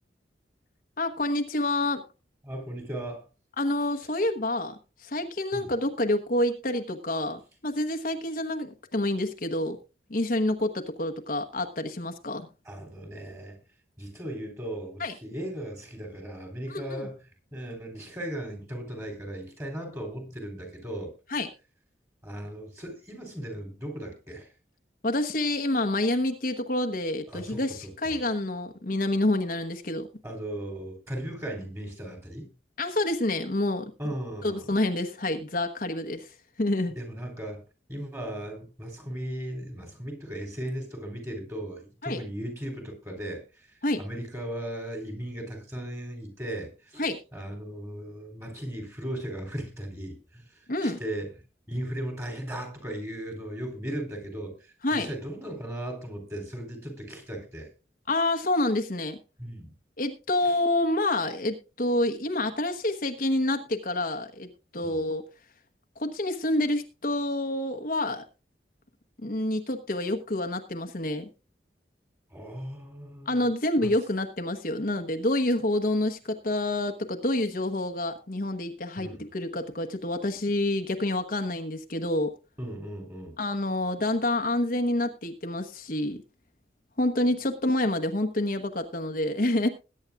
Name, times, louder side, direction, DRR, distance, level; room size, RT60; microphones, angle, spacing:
voice 1, 1.0-2.0 3.6-9.8 10.1-12.5 15.0-15.1 16.7-17.0 21.3-21.5 25.0-30.1 32.8-33.9 34.4-36.9 42.0-42.2 43.8-44.0 47.0-47.2 50.7-51.0 54.8-55.1 58.1-59.2 60.0-65.2 66.0-68.2 69.2-71.3 73.3-82.3 83.4-86.2 87.0-89.7, left 1 dB, 50° left, 1.1 m, -28 dB
voice 2, 2.4-3.2 5.5-5.7 12.7-13.6 14.0-17.2 17.5-21.1 22.2-24.5 27.3-28.2 30.2-32.5 34.0-34.7 36.9-37.6 37.9-43.7 44.0-47.0 47.3-51.3 51.7-57.7 59.4-59.7 60.4-60.6 64.8-65.0 72.3-73.4 73.8-73.9 79.0-79.2 82.6-83.4, right 1 dB, 15° right, 3.9 m, -37 dB
21.0 x 9.7 x 2.4 m
head